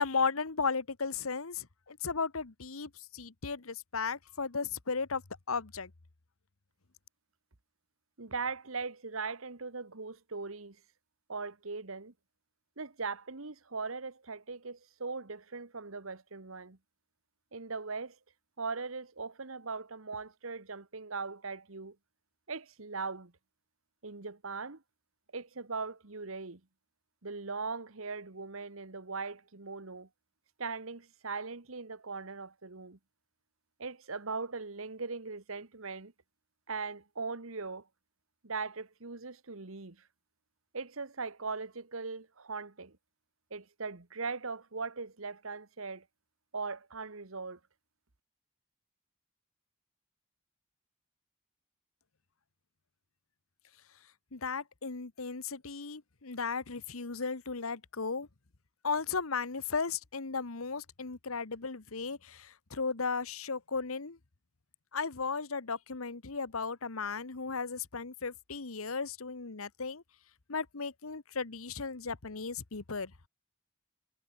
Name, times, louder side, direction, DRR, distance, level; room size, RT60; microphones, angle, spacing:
voice 1, 0.0-5.2 5.5-5.9 54.3-58.3 58.8-64.2 64.9-70.0 70.5-73.3, left 5 dB, 85° left, 1.3 m, -35 dB
voice 2, 8.2-10.8 11.3-12.1 12.8-16.8 17.5-18.2 18.6-21.9 22.5-23.3 24.0-24.8 25.3-26.6 27.2-30.1 30.6-33.0 33.8-36.1 36.7-37.9 38.4-40.0 40.7-43.0 43.5-46.0 46.5-47.6, right 4 dB, 80° right, 1.6 m, -39 dB
head